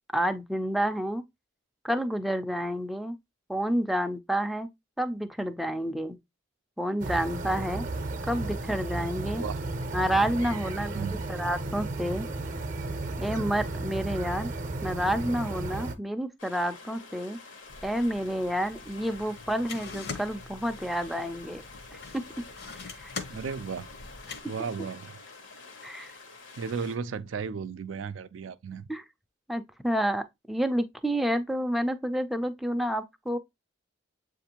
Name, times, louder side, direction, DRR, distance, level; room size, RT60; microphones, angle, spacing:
voice 1, 0.1-1.2 1.8-3.2 3.5-4.7 5.0-6.2 6.8-7.9 8.3-9.4 9.9-12.3 13.2-14.5 14.8-17.4 17.8-21.6 22.1-22.2 22.8-23.1 25.8-26.1 28.9-29.0 29.5-33.4, equal, ahead, 0.4 m, -29 dB
sound 1, 7.0-15.9, right 2 dB, 45° right, 0.6 m, -34 dB
sound 2, 16.4-27.0, left 4 dB, 85° left, 1.1 m, -48 dB
sound 3, 17.7-24.4, left 4 dB, 55° left, 0.7 m, -43 dB
voice 2, 23.3-23.9 24.5-25.2 26.6-28.9, right 5 dB, 85° right, 0.4 m, -34 dB
7.4 x 2.6 x 2.8 m
head